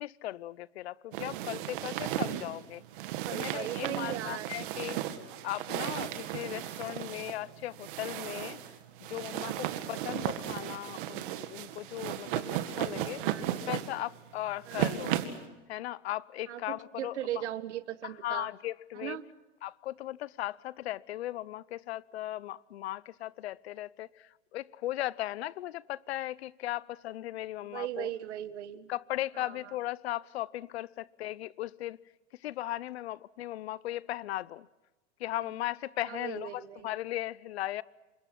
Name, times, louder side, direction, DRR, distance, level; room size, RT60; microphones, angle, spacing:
voice 1, 0.0-2.8 3.3-5.0 5.4-8.6 9.0-12.5 12.8-13.2 13.7-15.1 15.7-17.1 18.0-19.2 19.6-28.1 28.9-32.0 32.4-34.7 35.2-37.8, left 15 dB, 60° left, 0.8 m, -37 dB
sound 1, 1.1-15.4, right 12 dB, 45° right, 2.1 m, -35 dB
voice 2, 3.3-4.5 9.4-9.6 13.2-13.5 14.7-14.9 16.5-18.5 19.0-19.2 27.6-28.9 29.3-29.7 36.1-36.9, right 12 dB, 65° right, 1.7 m, -38 dB
28.5 x 25.5 x 6.0 m
supercardioid pair, 170°, 37 cm